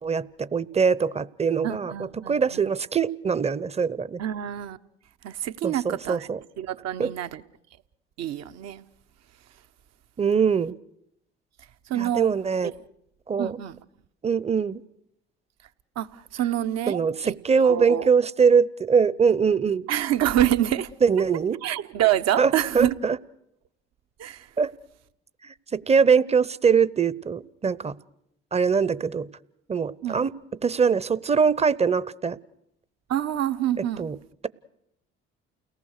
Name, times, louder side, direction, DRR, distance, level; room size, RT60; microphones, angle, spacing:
voice 1, 0.0-4.2 5.6-6.4 7.0-7.1 10.2-10.8 11.9-12.7 13.3-13.6 14.2-14.8 16.9-19.9 21.0-21.6 22.4-23.2 24.6-24.7 25.7-27.9 28.5-29.3 29.7-30.3 30.6-32.4 34.0-34.2, right 6 dB, 20° right, 0.8 m, -22 dB
voice 2, 1.6-2.6 4.2-4.8 5.2-6.3 6.6-7.4 8.2-8.8 11.9-12.3 12.6-12.7 13.4-13.8 16.0-17.3 17.6-18.1 19.9-20.9 21.6-22.9 24.2-24.5 30.0-30.2 33.1-34.1, right 12 dB, 55° right, 1.0 m, -26 dB
29.5 x 18.5 x 6.6 m
hypercardioid pair, 60°, 30 cm